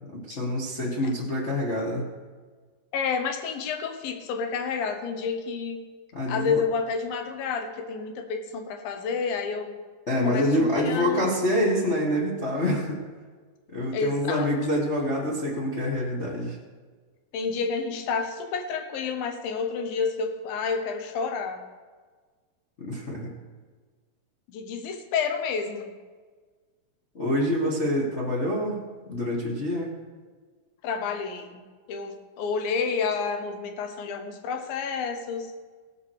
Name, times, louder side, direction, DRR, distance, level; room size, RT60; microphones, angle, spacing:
voice 1, 0.1-2.1 6.1-6.6 10.1-13.0 13.7-16.6 22.8-23.3 27.1-29.9, equal, 50° left, -4 dB, 0.8 m, -26 dB
voice 2, 2.9-5.8 6.3-9.8 10.2-11.3 13.9-14.5 17.3-21.6 24.5-25.9 30.8-31.6 31.9-35.5, left 5 dB, 85° left, 6 dB, 2.9 m, -29 dB
17.0 x 5.8 x 6.4 m, 1.4 s
omnidirectional pair, 4.0 m